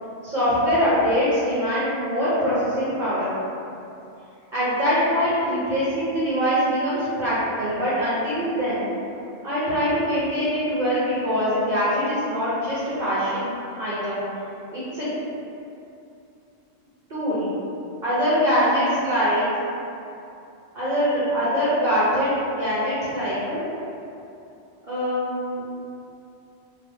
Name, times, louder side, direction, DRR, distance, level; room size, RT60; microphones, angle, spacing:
voice 1, 0.2-3.3 4.5-8.9 9.4-13.5 13.7-14.2 14.7-15.1 17.1-17.5 18.0-19.5 20.7-23.6 24.9-25.7, equal, 45° right, -12 dB, 1.1 m, -23 dB
3.8 x 2.1 x 3.4 m, 2.7 s
omnidirectional pair, 1.1 m